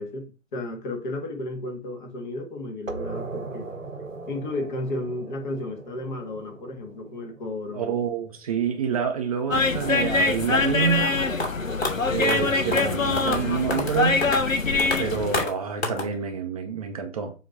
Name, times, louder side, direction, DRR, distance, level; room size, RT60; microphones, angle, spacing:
voice 1, 0.0-3.7 4.3-7.9, left 2 dB, 40° left, 1.9 m, -33 dB
sound 1, 2.9-8.2, right 3 dB, 90° right, 1.2 m, -38 dB
voice 2, 7.7-11.1 12.1-14.3 15.0-17.3, right 7 dB, 30° right, 0.7 m, -27 dB
sound 2, 9.5-15.5, left 3 dB, 90° left, 0.8 m, -24 dB
sound 3, 11.4-11.5 11.8-11.9 12.2-12.4 12.7-12.9 13.2-13.4 13.7-14.0 14.2-14.4 14.8-15.0 15.3-15.5 15.8-16.1, left 2 dB, 55° left, 2.4 m, -27 dB
7.0 x 3.0 x 5.4 m
figure-of-eight pair, 130°, 38 cm